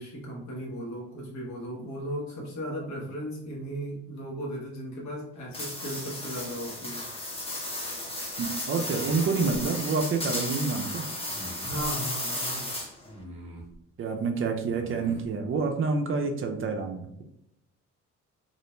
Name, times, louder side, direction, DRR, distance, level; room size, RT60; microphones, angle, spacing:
voice 1, 0.0-7.1 11.6-12.7, right 1 dB, 70° left, -1 dB, 1.0 m, -36 dB
sound 1, 5.5-13.1, left 1 dB, 20° left, 0.7 m, -34 dB
voice 2, 8.4-11.0 14.0-17.2, right 4 dB, 45° right, 4 dB, 0.4 m, -28 dB
sound 2, 8.9-9.7 11.2-11.9 13.0-13.8 14.7-15.3, right 1 dB, 20° right, 0.8 m, -44 dB
2.4 x 2.1 x 3.0 m, 0.77 s
cardioid pair, 90°, 30 cm